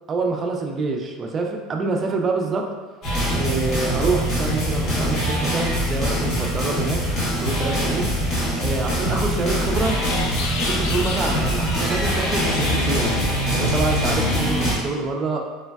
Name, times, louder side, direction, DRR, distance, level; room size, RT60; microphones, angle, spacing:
voice 1, 0.1-2.7 3.3-7.0 7.4-8.1 8.6-10.0 10.5-13.2 13.5-15.4, right 3 dB, 30° right, 2 dB, 0.3 m, -26 dB
sound 1, 3.0-14.8, equal, 45° left, 0.9 m, -23 dB
sound 2, 9.4-14.4, right 1 dB, 5° right, 1.0 m, -35 dB
sound 3, 9.8-14.8, left 4 dB, 75° left, 0.3 m, -33 dB
3.2 x 2.1 x 2.2 m, 1.3 s
supercardioid pair, 130°, 0 cm